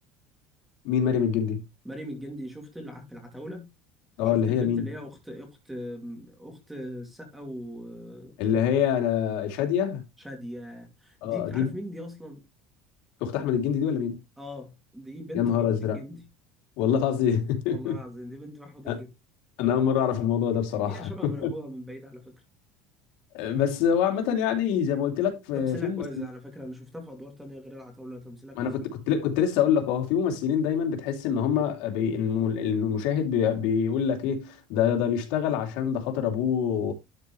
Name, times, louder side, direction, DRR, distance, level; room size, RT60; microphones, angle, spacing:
voice 1, 0.8-1.6 4.2-4.9 8.4-10.0 11.2-11.7 13.2-14.2 15.3-16.0 16.8-18.0 18.9-19.0 19.6-21.5 23.3-26.0 28.5-36.9, left 8 dB, 65° left, 2.8 m, -25 dB
voice 2, 1.8-3.7 4.2-8.4 10.2-12.4 14.4-16.3 17.7-19.1 20.9-22.3 25.5-28.8, equal, 5° right, 2.7 m, -40 dB
12.0 x 5.0 x 3.2 m
cardioid pair, 160°, 2 cm